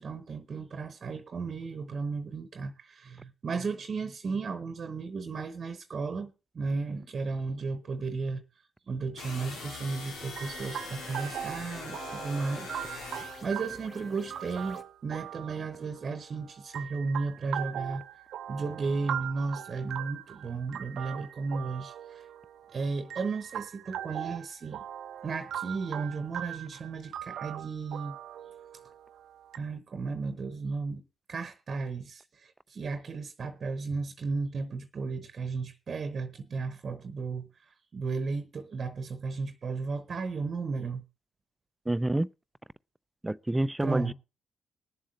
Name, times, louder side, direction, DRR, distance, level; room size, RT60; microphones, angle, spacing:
voice 1, 0.0-8.4 8.9-18.0 18.5-22.3 22.7-24.8 25.2-28.1 29.6-31.0 31.3-41.0 43.8-44.1, right 4 dB, 50° right, 1.0 m, -34 dB
sound 1, 9.2-13.6, left 3 dB, 80° left, 2.1 m, -42 dB
sound 2, 10.4-14.8, left 3 dB, 45° left, 1.5 m, -49 dB
sound 3, 10.4-29.6, right 11 dB, 70° right, 0.6 m, -40 dB
voice 2, 41.9-42.3 43.2-44.1, right 1 dB, 15° right, 0.5 m, -28 dB
20.5 x 7.5 x 3.3 m
hypercardioid pair, 45°, 0 cm